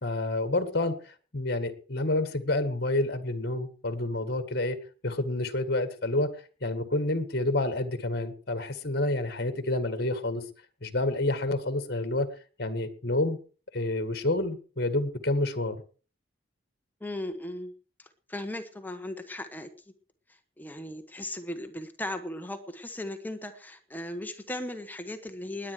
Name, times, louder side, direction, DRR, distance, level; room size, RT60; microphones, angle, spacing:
voice 1, 0.0-4.8 5.0-6.3 6.6-10.4 10.8-12.3 12.6-13.4 13.7-15.8, left 2 dB, 50° left, 11 dB, 1.8 m, -28 dB
voice 2, 17.0-17.7 18.0-19.7 20.3-25.7, left 1 dB, 10° left, 7 dB, 1.1 m, -37 dB
20.0 x 9.1 x 4.8 m, 0.39 s
head